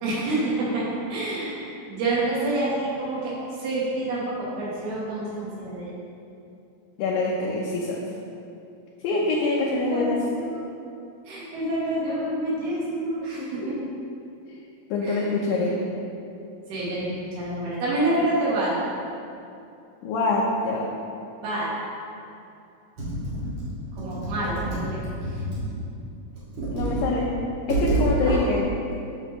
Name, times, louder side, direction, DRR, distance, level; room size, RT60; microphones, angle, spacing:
voice 1, 0.0-3.3 3.6-5.9 9.7-10.7 11.3-13.6 15.0-15.2 15.5-15.6 16.7-18.7 21.4-21.7 24.0-25.0 25.3-25.4 28.2-28.5, right 2 dB, 80° right, -7 dB, 3.3 m, -28 dB
voice 2, 7.0-8.0 9.0-10.2 13.4-13.7 14.9-15.7 20.0-20.9 26.7-27.3 27.7-28.7, left 3 dB, 75° left, -4 dB, 2.2 m, -25 dB
Computer keyboard, 23.0-25.7 26.4-27.0 27.3-27.4 27.7-28.1, right 2 dB, 50° right, 2.9 m, -28 dB
9.1 x 6.7 x 3.0 m, 2.6 s
omnidirectional pair, 4.4 m